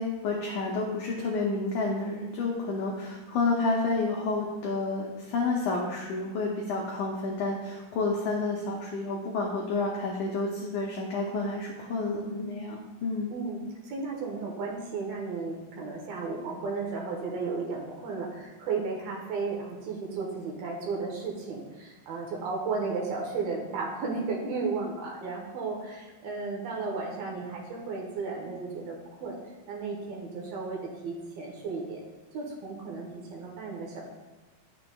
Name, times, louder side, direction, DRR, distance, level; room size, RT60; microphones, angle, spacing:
voice 1, 0.0-13.3, left 3 dB, 85° left, -2 dB, 1.7 m, -30 dB
voice 2, 12.2-12.5 13.3-29.4 29.7-32.0 32.3-34.0, right 4 dB, 75° right, -1 dB, 2.8 m, -34 dB
9.4 x 6.7 x 2.3 m, 1.3 s
omnidirectional pair, 4.5 m